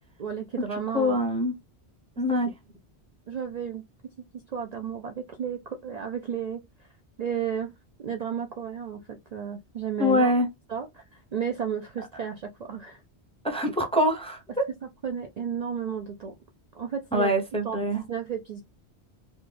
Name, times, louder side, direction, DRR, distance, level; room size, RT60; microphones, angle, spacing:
voice 1, 0.2-1.2 3.3-3.8 4.5-6.6 7.2-7.7 8.0-9.0 9.3-10.3 10.7-13.0 15.0-16.3 16.7-17.3 17.6-18.6, right 7 dB, 50° right, 0.5 m, -33 dB
voice 2, 0.9-1.5 2.2-2.5 10.0-10.5 13.4-14.7 17.1-18.0, left 1 dB, 5° left, 0.6 m, -24 dB
4.1 x 2.3 x 3.2 m
omnidirectional pair, 1.1 m